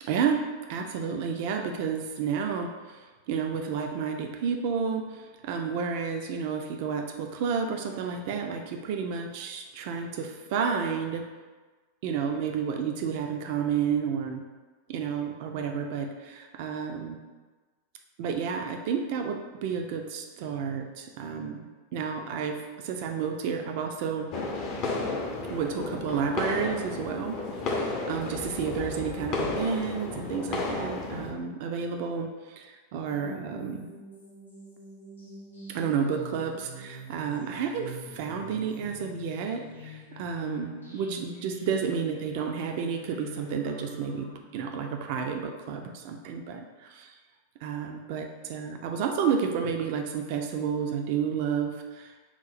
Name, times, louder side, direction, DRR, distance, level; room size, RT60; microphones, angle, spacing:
voice 1, 0.1-11.2 12.0-14.4 14.9-17.2 18.2-24.3 25.5-27.4 27.7-33.9 35.7-47.1 47.6-52.2, right 6 dB, 45° right, 4 dB, 0.4 m, -31 dB
sound 1, 24.3-31.3, left 3 dB, 40° left, 0.5 m, -32 dB
sound 2, 33.1-44.4, right 1 dB, 80° left, 0.7 m, -45 dB
2.9 x 2.0 x 4.0 m, 1.3 s
figure-of-eight pair, 90°, 0 cm